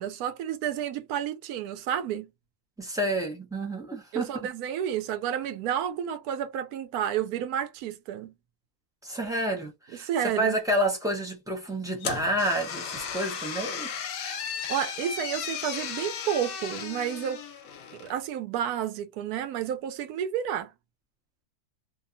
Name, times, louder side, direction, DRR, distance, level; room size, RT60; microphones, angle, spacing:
voice 1, 0.0-2.3 4.1-8.3 9.9-10.6 14.7-17.4 17.9-20.7, right 9 dB, 90° right, 1.1 m, -31 dB
voice 2, 2.8-4.3 9.0-13.9, right 1 dB, 5° right, 0.4 m, -29 dB
sound 1, 12.0-18.2, left 7 dB, 75° left, 1.0 m, -35 dB
2.7 x 2.3 x 2.5 m
omnidirectional pair, 1.6 m